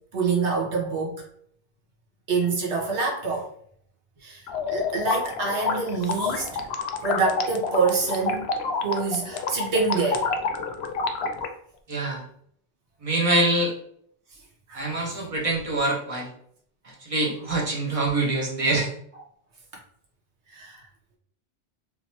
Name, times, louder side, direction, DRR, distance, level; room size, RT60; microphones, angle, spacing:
voice 1, 0.1-1.2 2.3-3.5 4.2-6.5 7.0-8.5 8.8-10.3 14.7-14.9 20.5-20.9, right 4 dB, 80° right, -2 dB, 1.4 m, -26 dB
sound 1, 4.5-11.5, left 4 dB, 70° left, 0.8 m, -28 dB
voice 2, 11.9-12.2 13.0-13.7 14.7-16.3 16.8-18.9, right 2 dB, 35° right, -1 dB, 0.9 m, -25 dB
3.3 x 2.8 x 2.9 m, 0.64 s
omnidirectional pair, 1.1 m